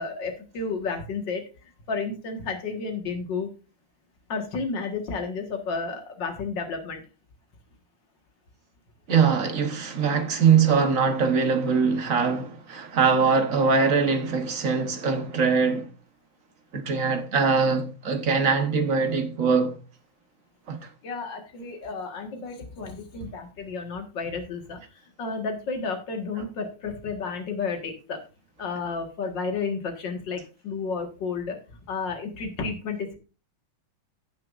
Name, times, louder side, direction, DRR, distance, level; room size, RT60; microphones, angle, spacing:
voice 1, 0.0-3.5 4.3-7.0 21.0-28.2 28.6-31.6 31.9-33.2, left 4 dB, 85° left, 2.4 m, -32 dB
voice 2, 9.1-15.9 16.7-19.8 20.7-20.8, right 5 dB, 50° right, 1.5 m, -22 dB
17.0 x 6.2 x 2.5 m
omnidirectional pair, 1.9 m